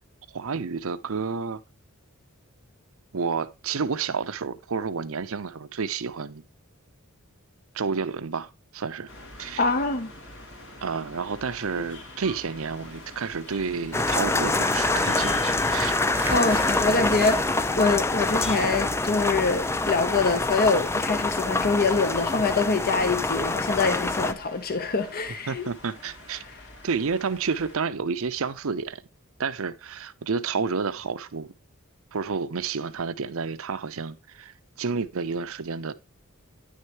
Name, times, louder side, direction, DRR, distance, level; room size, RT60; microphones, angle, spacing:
voice 1, 0.3-1.6 3.1-6.4 7.7-9.1 9.4-9.6 10.8-15.9 25.5-26.4 26.8-29.0 29.4-31.5 32.1-35.9, right 5 dB, 65° right, 0.7 m, -30 dB
sound 1, 9.1-27.8, left 1 dB, 70° left, 2.7 m, -44 dB
voice 2, 9.6-10.1 16.3-25.6, left 3 dB, 45° left, 0.9 m, -25 dB
sound 2, 13.9-24.3, left 2 dB, 10° left, 0.4 m, -25 dB
sound 3, 16.1-23.8, right 2 dB, 10° right, 1.0 m, -40 dB
9.6 x 6.5 x 3.0 m
head